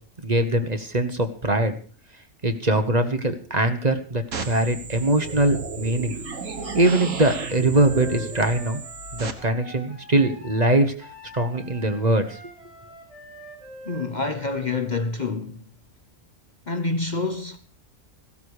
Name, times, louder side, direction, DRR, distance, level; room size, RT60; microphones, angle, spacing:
voice 1, 0.2-1.8 2.4-6.2 6.7-8.8 9.1-10.9 11.3-12.4, right 2 dB, 35° right, 1.3 m, -22 dB
sound 1, 4.3-9.3, right 4 dB, 75° right, 1.8 m, -34 dB
Wind instrument woodwind instrument, 6.6-15.1, right 1 dB, 60° right, 5.8 m, -44 dB
voice 2, 13.8-15.6 16.7-17.6, left 3 dB, 40° left, 1.0 m, -27 dB
15.5 x 12.5 x 4.9 m
omnidirectional pair, 1.4 m